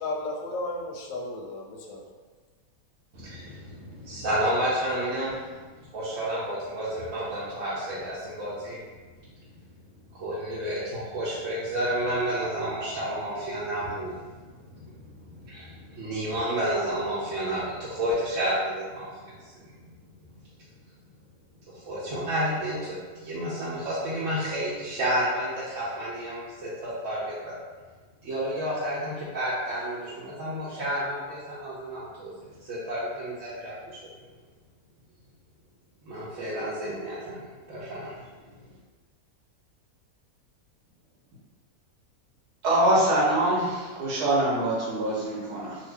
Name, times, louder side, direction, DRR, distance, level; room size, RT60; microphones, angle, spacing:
voice 1, 0.0-2.0, left 2 dB, 70° left, 0 dB, 0.9 m, -34 dB
voice 2, 3.1-5.6 5.9-8.8 9.5-9.6 10.1-19.9 21.7-27.5 28.2-34.0 36.0-38.3 38.6-38.7, right 1 dB, 65° right, -9 dB, 1.0 m, -31 dB
voice 3, 42.6-45.8, right 1 dB, 90° right, -5 dB, 1.5 m, -24 dB
2.8 x 2.6 x 3.3 m, 1.4 s
omnidirectional pair, 1.6 m